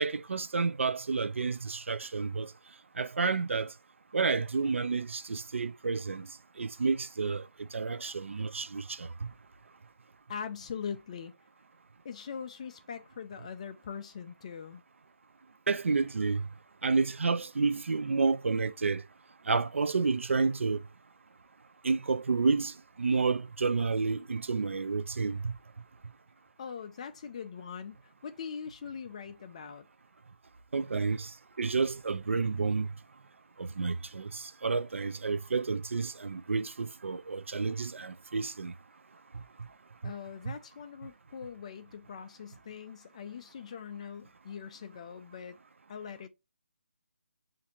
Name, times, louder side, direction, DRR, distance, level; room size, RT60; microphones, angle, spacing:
voice 1, 0.0-2.5 3.0-3.7 4.1-6.3 6.6-7.4 7.7-9.1 15.7-16.5 16.8-19.0 19.5-20.8 21.8-25.5 30.7-31.3 31.6-32.9 33.6-38.7, right 4 dB, 75° right, 0.4 m, -30 dB
voice 2, 10.3-11.3 12.0-14.8 26.6-29.8 40.0-45.6 45.9-46.3, left 7 dB, 30° left, 0.3 m, -42 dB
7.1 x 2.6 x 2.8 m
figure-of-eight pair, 155°, 7 cm